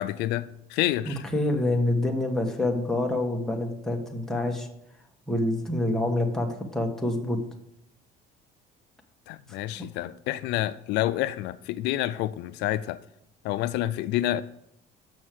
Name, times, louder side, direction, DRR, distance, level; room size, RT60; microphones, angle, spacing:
voice 1, 0.0-1.2 9.3-13.0 13.4-14.4, left 14 dB, 75° left, 0.4 m, -28 dB
voice 2, 1.1-4.7 5.3-7.4 9.5-9.6, left 1 dB, 5° left, 1.3 m, -27 dB
6.4 x 6.2 x 7.5 m
cardioid pair, 130°, 18 cm